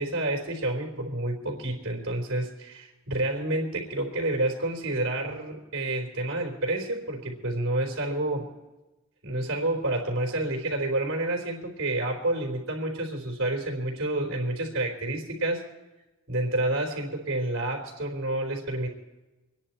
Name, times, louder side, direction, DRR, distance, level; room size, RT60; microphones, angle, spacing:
voice 1, 0.0-8.5 9.2-15.6 16.3-18.9, right 1 dB, 70° right, 1 dB, 3.5 m, -29 dB
26.5 x 10.0 x 4.4 m, 1.1 s
head